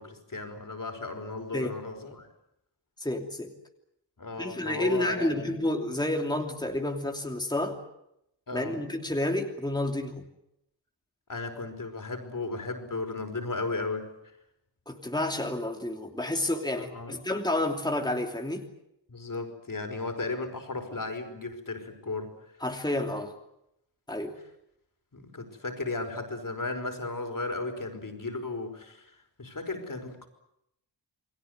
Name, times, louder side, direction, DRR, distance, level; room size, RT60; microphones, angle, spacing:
voice 1, 0.0-2.3 4.2-5.5 8.5-8.8 11.3-14.1 16.8-17.2 19.1-22.3 25.1-29.1 29.4-30.3, left 3 dB, 45° left, 6 dB, 5.1 m, -35 dB
voice 2, 3.0-3.5 4.4-7.8 8.5-10.3 14.9-18.7 22.6-23.3 24.1-24.4, left 1 dB, 10° left, 3 dB, 2.9 m, -30 dB
29.0 x 21.5 x 8.0 m, 0.81 s
wide cardioid pair, 110°, 45 cm